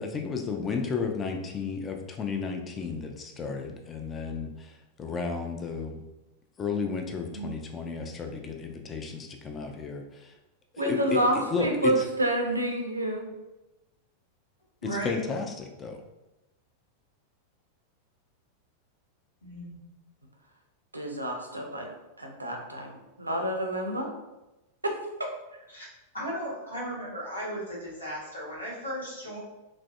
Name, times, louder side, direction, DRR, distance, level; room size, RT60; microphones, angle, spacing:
voice 1, 0.0-6.0 6.6-10.3 10.7-12.0 14.8-16.0, left 5 dB, 20° left, 4 dB, 0.4 m, -33 dB
voice 2, 10.8-13.3 20.9-21.9 22.2-24.1 24.8-25.3, right 1 dB, 85° right, 2 dB, 0.5 m, -28 dB
voice 3, 14.8-15.3 19.4-19.8 25.7-25.9 26.1-29.4, right 1 dB, 80° left, -5 dB, 1.0 m, -36 dB
3.1 x 2.5 x 2.3 m, 1.0 s
figure-of-eight pair, 90°, 0 cm